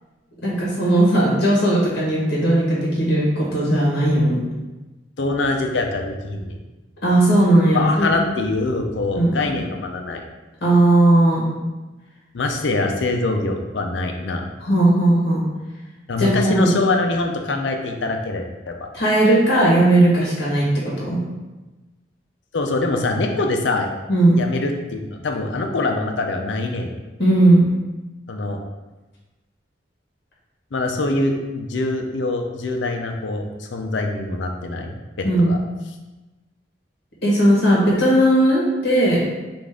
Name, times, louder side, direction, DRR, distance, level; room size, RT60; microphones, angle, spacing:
voice 1, 0.4-4.4 7.0-8.1 9.1-9.4 10.6-11.5 14.6-15.4 16.2-16.7 18.9-20.6 21.0-21.2 24.1-24.4 27.2-27.6 35.2-35.6 37.2-39.2, right 1 dB, 60° left, -5 dB, 1.4 m, -17 dB
voice 2, 5.2-6.6 7.7-10.2 12.3-14.5 16.1-18.9 22.5-23.9 24.4-26.9 28.3-28.6 30.7-35.6, left 2 dB, 80° left, 3 dB, 0.6 m, -24 dB
5.2 x 2.5 x 3.7 m, 1.1 s
head